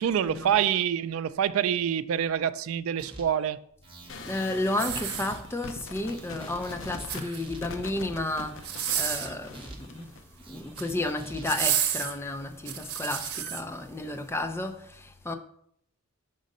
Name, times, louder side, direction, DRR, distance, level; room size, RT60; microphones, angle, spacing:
voice 1, 0.0-3.6, right 9 dB, 65° right, 0.3 m, -26 dB
sound 1, 3.0-3.5 3.8-5.7 6.0-7.8 8.2-10.0 10.4-11.7, right 2 dB, 25° right, 0.9 m, -47 dB
sound 2, 4.1-10.2, left 3 dB, 60° left, 0.6 m, -42 dB
voice 2, 4.2-10.1 10.5-15.3, left 2 dB, 10° left, 0.5 m, -32 dB
sound 3, 4.7-5.8 6.9-7.6 8.6-9.4 10.5-10.9 11.4-13.6 14.2-14.3, right 9 dB, 90° right, 0.8 m, -31 dB
5.1 x 3.7 x 5.3 m
head